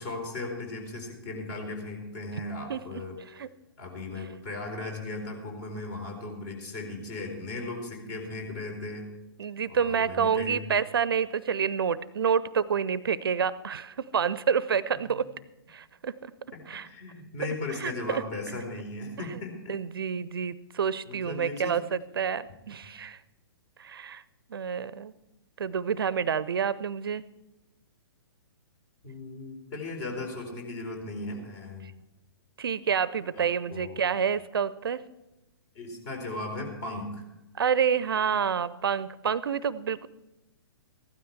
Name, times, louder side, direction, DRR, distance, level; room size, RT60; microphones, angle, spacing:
voice 1, 0.0-3.4 3.8-9.1 9.7-10.6 15.1-15.2 16.5-19.8 21.1-21.8 22.8-22.9 29.0-31.9 33.4-34.2 35.7-37.2, left 2 dB, 45° left, 2 dB, 4.4 m, -37 dB
voice 2, 9.4-15.3 15.7-16.3 16.7-16.9 17.8-18.2 19.7-23.2 23.8-24.2 24.5-25.1 25.6-27.2 32.6-35.0 37.6-40.1, right 7 dB, 65° right, 18 dB, 0.6 m, -28 dB
15.5 x 12.5 x 4.6 m, 0.95 s
figure-of-eight pair, 120°, 13 cm